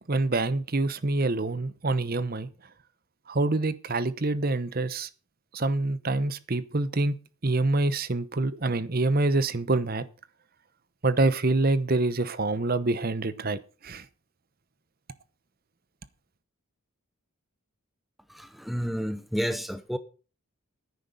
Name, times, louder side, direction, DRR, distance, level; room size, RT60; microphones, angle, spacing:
voice 1, 0.1-2.5 3.3-5.1 5.5-7.1 7.4-10.0 11.0-14.1, right 2 dB, 40° right, 0.9 m, -26 dB
voice 2, 18.3-20.0, equal, ahead, 0.6 m, -30 dB
10.0 x 9.5 x 6.7 m
head